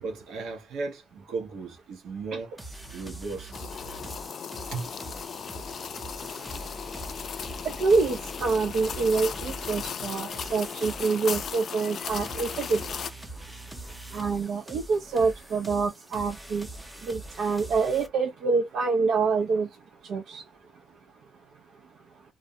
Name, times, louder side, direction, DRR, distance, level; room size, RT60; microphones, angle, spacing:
voice 1, 0.0-2.5 2.9-3.7 4.7-4.9 9.8-10.1, right 4 dB, 90° right, 0.9 m, -36 dB
sound 1, 2.6-18.1, right 1 dB, 5° right, 0.6 m, -43 dB
sound 2, 3.5-13.1, left 7 dB, 50° left, 0.3 m, -37 dB
voice 2, 7.6-12.8 14.1-16.7 17.0-19.7 20.0-20.4, right 4 dB, 70° right, 0.5 m, -26 dB
2.5 x 2.1 x 2.7 m
cardioid pair, 145°, 0 cm